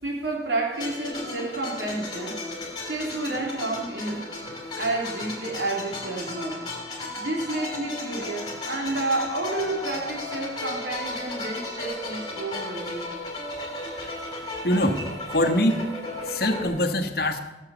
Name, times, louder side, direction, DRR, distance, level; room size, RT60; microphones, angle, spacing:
voice 1, 0.0-2.4 2.8-4.3 4.8-6.6 6.9-13.1, right 2 dB, 75° right, 0 dB, 3.3 m, -30 dB
sound 1, 0.7-16.7, left 2 dB, 25° left, 3.1 m, -35 dB
voice 2, 14.6-15.0 15.3-15.9 16.2-17.4, left 1 dB, 55° left, 7 dB, 1.2 m, -23 dB
17.5 x 6.6 x 7.1 m, 1.1 s
head